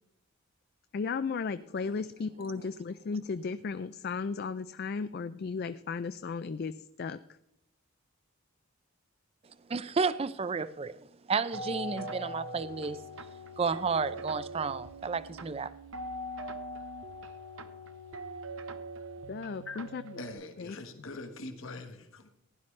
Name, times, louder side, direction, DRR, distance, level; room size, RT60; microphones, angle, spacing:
voice 1, 0.9-7.2 19.3-20.0 20.6-20.8, left 5 dB, 45° left, 0.3 m, -35 dB
voice 2, 9.7-11.0 11.3-13.0 13.6-15.7, right 5 dB, 25° right, 0.4 m, -31 dB
sound 1, 11.5-20.3, right 1 dB, 65° right, 0.9 m, -42 dB
voice 3, 19.5-19.8 20.2-22.3, left 2 dB, 65° left, 1.3 m, -43 dB
16.0 x 11.0 x 3.2 m
head